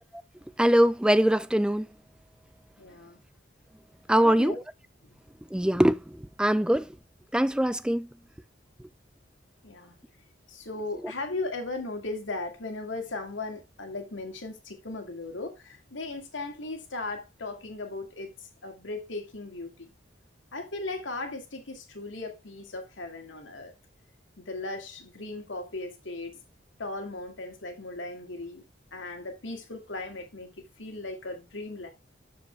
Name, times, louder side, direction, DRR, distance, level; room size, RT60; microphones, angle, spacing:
voice 1, 0.6-1.9 4.1-4.5 5.5-6.0 6.4-6.8 7.3-8.1, equal, 5° right, 0.4 m, -22 dB
voice 2, 2.8-3.2 4.1-4.6 9.6-10.0 10.5-18.3 18.6-19.9 20.5-23.7 24.4-26.3 26.8-28.6 28.9-30.5 30.8-31.9, left 2 dB, 85° left, 2.3 m, -37 dB
13.0 x 4.9 x 3.3 m
head